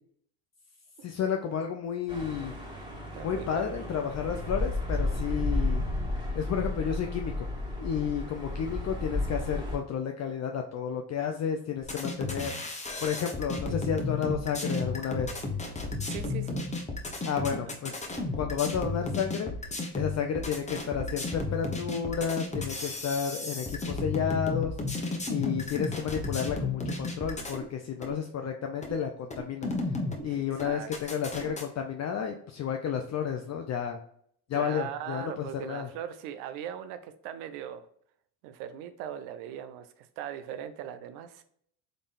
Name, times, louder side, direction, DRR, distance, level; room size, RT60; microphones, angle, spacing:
voice 1, 1.0-2.5 3.2-5.8 6.3-7.5 7.8-12.5 13.0-15.3 17.2-18.0 18.4-19.5 19.9-24.7 25.3-29.7 30.2-34.0 34.5-35.9, left 7 dB, 40° left, 4 dB, 0.5 m, -31 dB
sound 1, 2.1-9.8, left 2 dB, 10° right, 1.6 m, -32 dB
voice 2, 3.1-3.8 16.0-16.7 17.2-17.6 30.3-31.1 34.5-37.9 38.4-41.4, right 10 dB, 80° right, 10 dB, 0.6 m, -40 dB
sound 2, 11.8-27.6 28.0-28.1 28.8-28.9 29.3-30.2 30.6-31.6, left 3 dB, 15° left, 1.0 m, -33 dB
3.9 x 3.5 x 2.5 m, 0.65 s
supercardioid pair, 80°, 42 cm